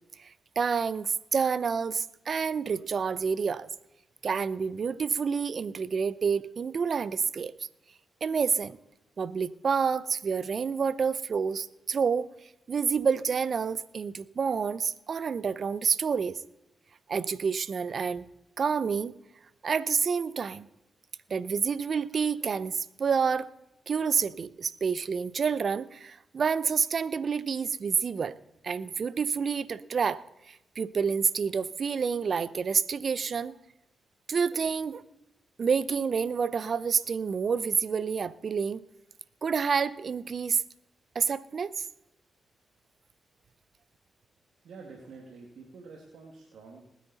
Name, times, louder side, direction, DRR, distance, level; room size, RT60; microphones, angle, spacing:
voice 1, 0.6-3.7 4.2-7.5 8.2-8.8 9.2-12.3 12.7-16.4 17.1-18.3 18.6-19.1 19.6-20.6 21.3-23.5 23.9-28.3 28.6-33.6 34.3-35.0 35.6-38.8 39.4-40.6 41.1-41.9, right 6 dB, 60° right, 18 dB, 0.6 m, -28 dB
voice 2, 44.6-46.8, right 4 dB, 75° right, 0 dB, 2.1 m, -48 dB
20.0 x 9.3 x 4.1 m, 0.89 s
supercardioid pair, 50°, 0 cm